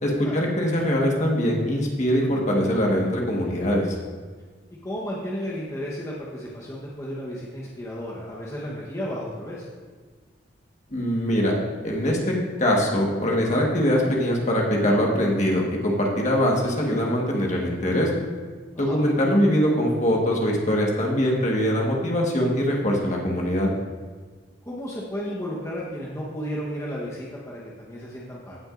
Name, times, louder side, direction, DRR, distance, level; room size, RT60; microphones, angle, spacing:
voice 1, 0.0-4.0 10.9-11.5 11.8-12.3 12.6-18.1 18.8-23.7, equal, 40° left, -1 dB, 1.5 m, -22 dB
voice 2, 4.8-9.7 18.7-19.0 24.6-28.6, equal, 15° left, -5 dB, 1.1 m, -33 dB
16.0 x 6.1 x 2.6 m, 1.5 s
head